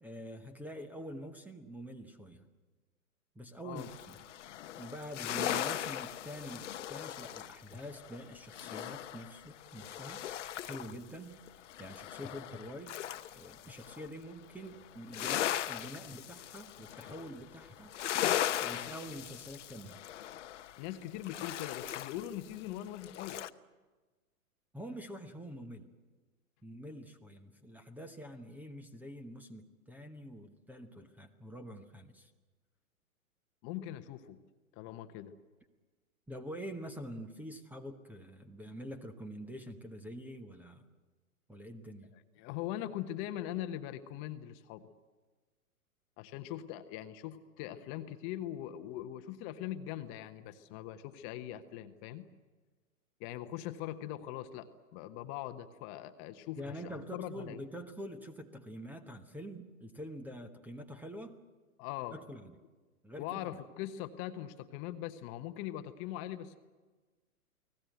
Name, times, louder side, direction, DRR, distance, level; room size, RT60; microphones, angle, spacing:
voice 1, 0.0-2.5 3.3-4.3 4.8-10.2 10.6-13.0 13.3-17.9 18.6-20.0 24.7-25.9 26.6-32.3 36.3-40.8 41.5-42.1 56.6-61.4 62.1-62.5 63.0-63.5, equal, 5° right, 9 dB, 1.1 m, -46 dB
sound 1, 3.8-11.0 11.3-14.1 14.5-23.5, left 11 dB, 55° left, 1.0 m, -38 dB
voice 2, 20.8-23.4 33.6-34.4 34.7-35.3 42.4-44.9 46.2-52.3 53.2-57.6 61.8-62.2 63.2-66.6, left 12 dB, 30° left, 10 dB, 1.1 m, -41 dB
29.5 x 19.0 x 8.1 m, 1.3 s
figure-of-eight pair, 115°, 44 cm